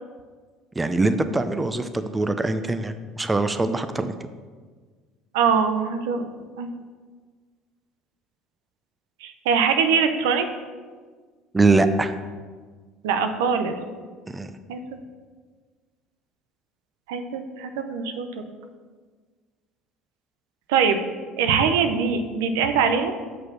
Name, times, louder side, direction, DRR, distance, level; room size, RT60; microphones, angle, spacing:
voice 1, 0.8-4.1 11.5-12.1 14.3-14.5, right 3 dB, 15° right, 9 dB, 0.5 m, -23 dB
voice 2, 5.3-6.7 9.2-10.5 13.0-13.8 14.7-14.8 17.1-18.4 20.7-21.0 21.4-23.1, right 6 dB, 85° right, 8 dB, 0.6 m, -23 dB
6.3 x 5.0 x 6.0 m, 1.5 s
supercardioid pair, 85°, 0 cm